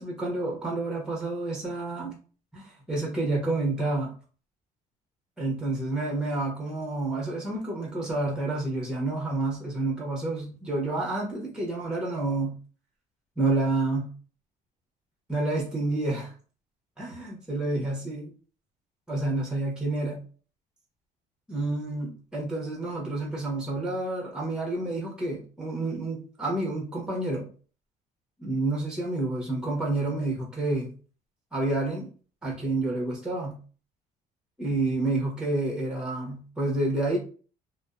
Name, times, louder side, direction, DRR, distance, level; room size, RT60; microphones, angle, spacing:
voice 1, 0.0-2.1 2.5-4.1 5.4-12.6 13.4-14.1 15.3-16.3 17.0-18.3 19.1-20.2 21.5-27.5 28.4-30.9 31.5-32.1 32.4-33.6 34.6-37.2, right 2 dB, 5° right, -2 dB, 0.9 m, -29 dB
2.6 x 2.1 x 2.4 m, 0.39 s
cardioid pair, 110°, 17 cm